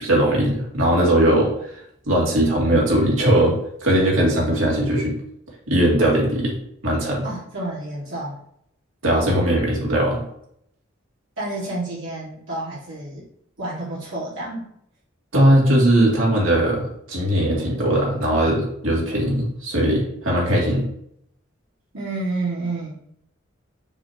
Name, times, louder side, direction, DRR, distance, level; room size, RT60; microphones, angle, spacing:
voice 1, 0.0-1.5 2.1-5.2 5.7-6.5 6.8-7.3 9.0-10.2 15.3-20.8, right 1 dB, 90° right, -3 dB, 2.6 m, -19 dB
voice 2, 7.2-8.4 11.4-13.2 13.6-14.7 21.9-23.1, right 2 dB, 75° right, -8 dB, 2.1 m, -29 dB
7.0 x 6.5 x 2.9 m, 0.70 s
head